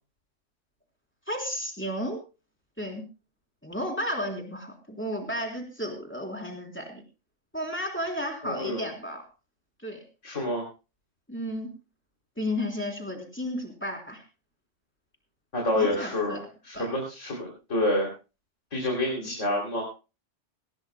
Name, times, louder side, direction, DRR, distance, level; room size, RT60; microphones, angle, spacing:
voice 1, 1.3-2.2 2.8-3.0 3.6-7.0 7.5-9.3 9.8-10.0 11.3-11.7 12.4-14.2 15.8-16.5 16.8-16.9 19.2-19.3, equal, 10° left, 1 dB, 3.4 m, -33 dB
voice 2, 8.4-8.9 10.2-10.6 15.5-18.1 18.7-19.8, left 1 dB, 80° left, -1 dB, 3.5 m, -28 dB
19.0 x 17.5 x 2.2 m, 0.32 s
omnidirectional pair, 1.3 m